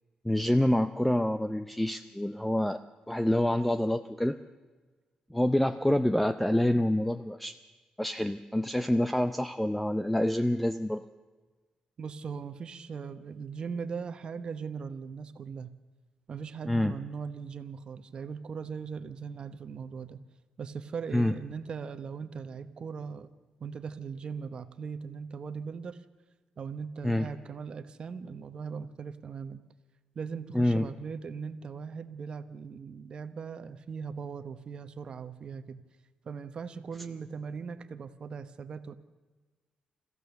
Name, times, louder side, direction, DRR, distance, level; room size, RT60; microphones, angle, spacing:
voice 1, 0.2-2.8 3.1-4.4 5.3-7.6 8.0-11.0 16.7-16.9 21.1-21.4 27.0-27.3 30.5-30.9, left 1 dB, 5° left, 11 dB, 0.6 m, -27 dB
voice 2, 12.0-15.7 16.3-20.2 20.6-23.3 23.6-26.0 26.6-29.6 30.1-35.8 36.2-38.9, right 6 dB, 45° right, 10 dB, 1.0 m, -39 dB
28.5 x 15.0 x 7.0 m, 1.3 s
cardioid pair, 130°, 2 cm